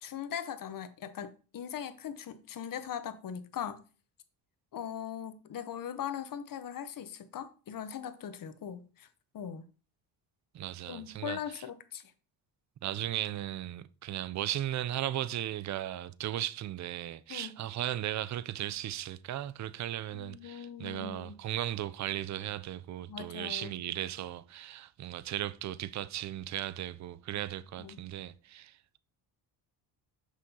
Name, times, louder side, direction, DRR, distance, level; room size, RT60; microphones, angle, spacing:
voice 1, 0.0-3.8 4.7-9.1 9.3-9.7 10.9-12.1 17.3-17.6 20.1-21.4 23.1-23.7 27.8-28.0, left 8 dB, 50° left, 0.8 m, -40 dB
voice 2, 10.5-11.6 12.8-29.0, right 12 dB, 45° right, 0.4 m, -36 dB
6.3 x 5.5 x 2.8 m
cardioid pair, 80°, 43 cm